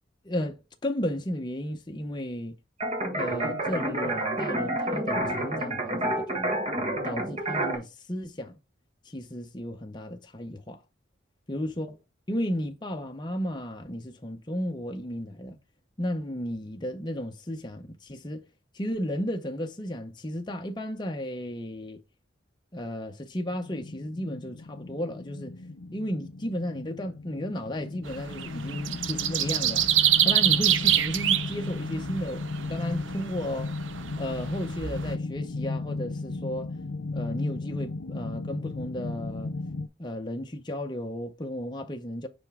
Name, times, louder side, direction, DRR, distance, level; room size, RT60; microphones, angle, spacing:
voice 1, 0.2-2.6 3.1-6.6 7.0-8.5 9.0-10.8 11.5-12.0 12.3-15.6 16.0-18.4 18.7-22.0 22.7-25.5 25.9-29.9 30.2-33.7 34.2-36.7 37.1-39.5 40.0-42.3, equal, 25° left, 0.7 m, -34 dB
sound 1, 2.8-7.8, right 1 dB, 35° right, 1.5 m, -29 dB
sound 2, 23.4-39.9, left 3 dB, 85° left, 0.7 m, -36 dB
sound 3, 28.1-35.1, right 10 dB, 90° right, 0.7 m, -25 dB
5.7 x 5.2 x 3.6 m
head